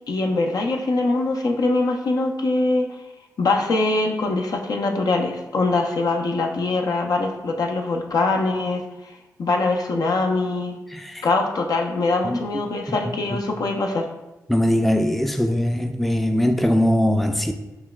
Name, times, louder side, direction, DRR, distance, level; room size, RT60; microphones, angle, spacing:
voice 1, 0.1-2.9 3.4-8.8 9.4-10.8 11.2-14.1, left 3 dB, 65° left, 3 dB, 0.5 m, -23 dB
voice 2, 10.9-11.3 12.2-12.4 13.3-13.4 14.5-17.5, left 1 dB, ahead, 6 dB, 0.3 m, -21 dB
5.6 x 2.3 x 2.2 m, 1.0 s
supercardioid pair, 40°, 7 cm